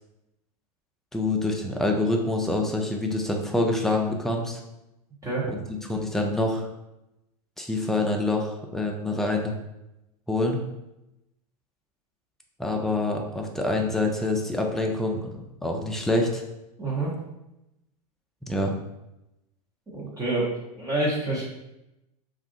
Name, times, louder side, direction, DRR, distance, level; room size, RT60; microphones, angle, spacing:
voice 1, 1.1-4.6 5.5-6.7 7.6-9.5 10.3-10.6 12.6-16.4 18.5-18.7, left 2 dB, ahead, 1 dB, 0.4 m, -26 dB
voice 2, 16.8-17.1 19.9-20.5 20.8-21.4, right 2 dB, 15° right, -5 dB, 0.9 m, -27 dB
2.4 x 2.4 x 3.8 m, 0.92 s
figure-of-eight pair, 90°, 20 cm